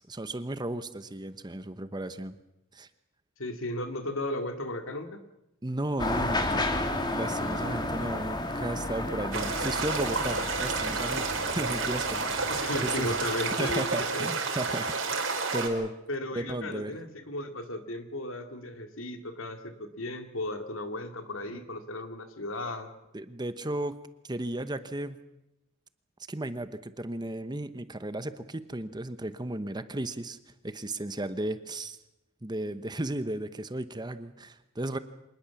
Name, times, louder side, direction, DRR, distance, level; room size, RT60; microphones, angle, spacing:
voice 1, 0.0-2.4 2.7-2.9 5.6-6.7 7.1-13.2 13.6-15.9 16.3-16.9 21.5-21.6 23.1-24.0 24.3-25.2 26.3-30.4 30.6-32.0 32.4-35.0, right 1 dB, 20° right, 12 dB, 1.0 m, -34 dB
voice 2, 3.4-5.2 12.5-14.3 16.1-22.9, left 1 dB, 75° left, 7 dB, 2.5 m, -35 dB
sound 1, 6.0-13.9, left 1 dB, 20° left, 2.4 m, -33 dB
sound 2, 9.3-15.7, right 4 dB, 70° right, 4.2 m, -30 dB
26.0 x 20.0 x 7.1 m, 0.89 s
head